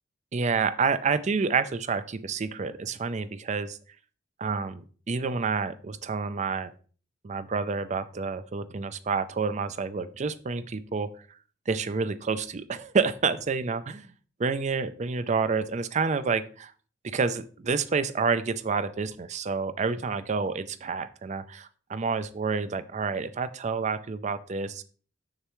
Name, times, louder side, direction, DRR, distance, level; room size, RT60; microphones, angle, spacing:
voice 1, 0.3-3.8 4.4-6.7 7.2-11.1 11.7-14.1 14.4-16.7 17.0-24.8, right 5 dB, 40° right, 14 dB, 0.4 m, -29 dB
6.7 x 6.6 x 3.0 m, 0.41 s
head